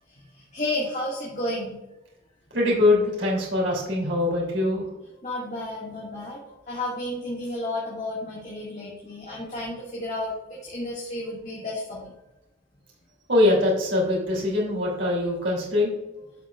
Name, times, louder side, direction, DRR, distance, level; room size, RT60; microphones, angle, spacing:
voice 1, 0.1-1.8 5.2-12.1, left 1 dB, 40° left, -5 dB, 1.9 m, -32 dB
voice 2, 2.5-4.8 13.3-15.9, left 2 dB, 80° right, -3 dB, 3.0 m, -22 dB
11.5 x 6.4 x 2.4 m, 0.96 s
head